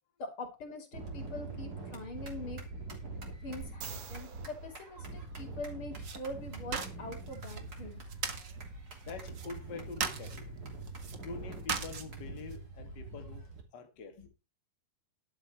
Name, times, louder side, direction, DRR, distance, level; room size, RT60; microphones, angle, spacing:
voice 1, 0.2-2.6 3.4-8.0 14.2-14.3, left 2 dB, 35° left, 3.5 m, -43 dB
sound 1, 0.9-13.6, right 3 dB, 25° right, 3.1 m, -44 dB
sound 2, 3.6-5.8 9.3-9.4, right 7 dB, 50° right, 2.4 m, -49 dB
sound 3, 6.0-12.6, right 6 dB, 70° right, 1.0 m, -41 dB
voice 2, 9.0-10.5 11.2-13.5 13.7-14.3, left 4 dB, 80° left, 0.9 m, -45 dB
11.5 x 8.6 x 4.4 m
omnidirectional pair, 4.7 m